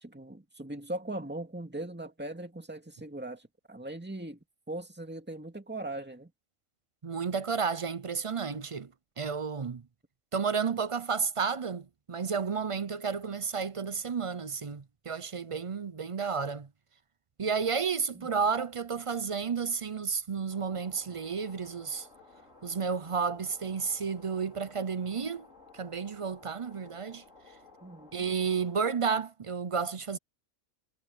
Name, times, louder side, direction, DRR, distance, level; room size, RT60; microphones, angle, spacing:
voice 1, 0.0-4.4 4.7-6.3 18.1-18.3 27.8-28.1, right 1 dB, 10° right, 2.3 m, -39 dB
voice 2, 7.0-8.9 9.2-9.8 10.3-16.7 17.4-22.1 22.6-25.5 25.7-27.2 28.1-30.2, right 6 dB, 35° right, 0.5 m, -32 dB
sound 1, 20.5-28.9, left 3 dB, 75° left, 5.9 m, -56 dB
omnidirectional pair, 1.3 m